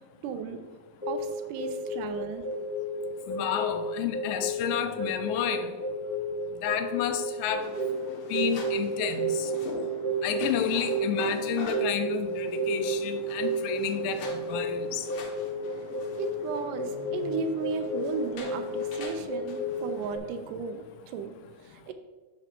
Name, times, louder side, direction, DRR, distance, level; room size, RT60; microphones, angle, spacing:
voice 1, 0.2-0.7 1.1-2.4 15.8-15.9 16.2-21.9, right 5 dB, 80° right, 8 dB, 2.1 m, -35 dB
sound 1, 1.0-20.2, right 1 dB, 5° right, 1.1 m, -32 dB
voice 2, 3.3-5.7 6.6-7.7 8.3-9.5 10.2-15.0, left 9 dB, 85° left, 9 dB, 2.3 m, -31 dB
sound 2, 7.5-20.2, left 4 dB, 70° left, 2.4 m, -44 dB
6.1 x 6.1 x 4.3 m, 1.3 s
omnidirectional pair, 3.9 m